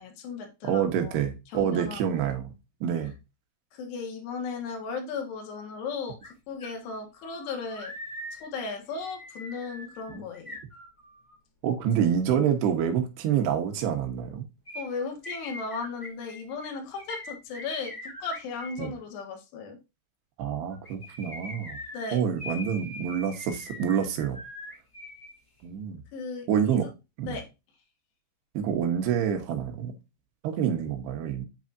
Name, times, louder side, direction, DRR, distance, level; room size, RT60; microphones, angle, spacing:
voice 1, 0.0-1.2 1.5-2.3 3.7-7.9 8.4-10.6 14.8-19.8 21.9-22.2 26.1-26.9 27.3-27.5, left 4 dB, 80° left, 3.6 m, -36 dB
voice 2, 0.6-2.5 2.8-3.1 10.1-10.2 11.6-14.5 18.8-18.9 20.4-21.8 22.1-24.4 25.6-26.0 26.5-26.9 27.2-27.4 28.5-29.9 30.4-31.4, right 8 dB, 75° right, 3.2 m, -27 dB
sound 1, 6.2-6.3 6.6-11.4 14.6-18.9 20.7-25.3 25.6-25.7, left 1 dB, 35° left, 0.4 m, -42 dB
8.6 x 4.8 x 2.6 m
omnidirectional pair, 4.8 m